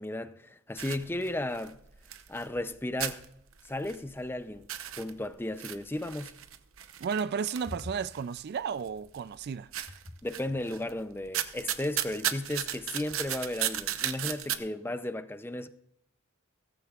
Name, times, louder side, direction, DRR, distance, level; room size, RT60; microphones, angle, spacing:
voice 1, 0.0-1.8 2.3-3.3 3.6-4.7 5.0-6.3 10.2-15.7, left 1 dB, 10° left, 0.5 m, -34 dB
sound 1, 0.8-2.7 3.0-4.3 4.6-8.4 8.9-9.4 9.7-10.9 11.2-14.6, right 11 dB, 70° right, 0.8 m, -35 dB
voice 2, 7.0-9.7, right 6 dB, 50° right, 0.3 m, -33 dB
17.0 x 14.5 x 2.4 m
head